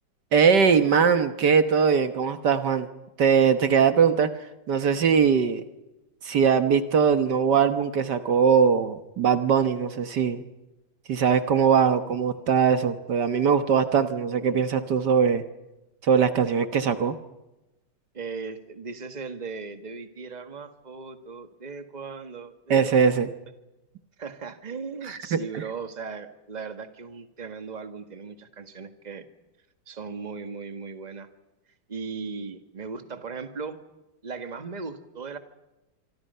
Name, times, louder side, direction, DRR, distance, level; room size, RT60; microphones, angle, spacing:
voice 1, 0.3-2.9 3.2-5.6 6.2-10.4 11.1-15.4 16.0-17.2 22.7-23.3 25.0-25.6, right 6 dB, 65° right, 10 dB, 1.8 m, -21 dB
voice 2, 18.1-22.9 24.2-29.3 29.9-31.3 31.9-33.8 34.2-35.4, right 5 dB, 25° right, 9 dB, 1.7 m, -37 dB
26.5 x 24.5 x 5.6 m, 0.99 s
omnidirectional pair, 2.0 m